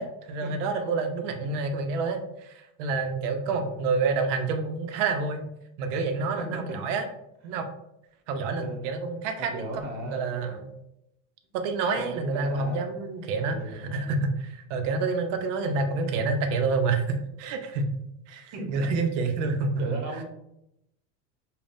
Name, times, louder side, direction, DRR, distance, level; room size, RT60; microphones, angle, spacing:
voice 1, 0.0-5.4 5.8-7.1 7.4-7.7 8.3-10.7 11.5-17.9 18.3-19.8, right 4 dB, 75° right, 6 dB, 0.7 m, -28 dB
voice 2, 3.5-3.8 6.2-6.4 8.6-8.9 9.5-10.3 12.0-12.9 13.4-14.2 18.5-18.7 19.4-19.5 19.8-20.2, right 1 dB, 50° right, 2 dB, 1.0 m, -37 dB
5.3 x 2.3 x 2.5 m, 0.83 s
supercardioid pair, 125°, 36 cm